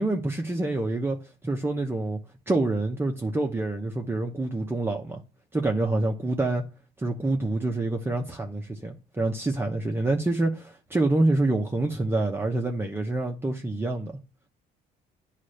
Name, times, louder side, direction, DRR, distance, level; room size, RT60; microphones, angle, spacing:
voice 1, 0.0-2.2 2.5-5.2 5.5-6.6 7.0-14.1, right 2 dB, 15° right, 0.9 m, -27 dB
9.5 x 3.3 x 6.5 m
cardioid pair, 110°, 17 cm